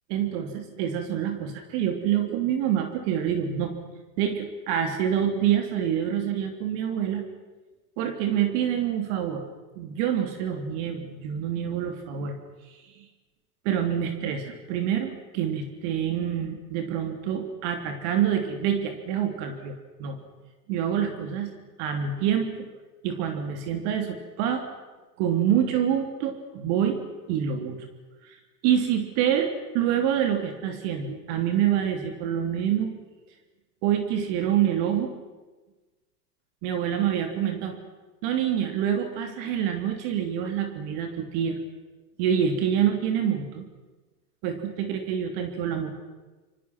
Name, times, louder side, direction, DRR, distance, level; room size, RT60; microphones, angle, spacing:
voice 1, 0.1-3.7 4.2-7.2 8.0-9.4 9.8-12.3 12.7-12.8 13.6-20.2 20.7-21.5 21.8-22.7 23.0-24.6 25.2-27.0 27.3-27.8 28.2-28.4 28.6-29.5 29.7-32.9 33.8-35.1 36.6-37.7 38.2-41.6 42.2-43.7 44.4-45.9, right 9 dB, 50° right, 6 dB, 3.1 m, -26 dB
27.0 x 24.5 x 6.1 m, 1.2 s
hypercardioid pair, 105°, 49 cm